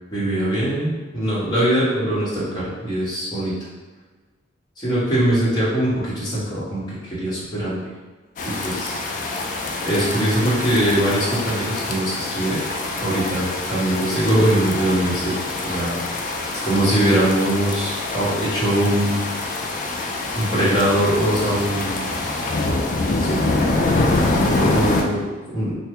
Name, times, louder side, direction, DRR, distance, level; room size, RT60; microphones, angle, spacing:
voice 1, 0.1-3.5 4.8-7.9 8.4-8.9 9.8-12.6 13.0-16.0 16.5-19.2 20.3-22.1 23.2-23.4 24.5-25.8, right 1 dB, 20° left, -9 dB, 0.9 m, -22 dB
sound 1, 8.4-25.0, left 2 dB, 40° left, 0.3 m, -25 dB
3.2 x 2.1 x 3.4 m, 1.3 s
head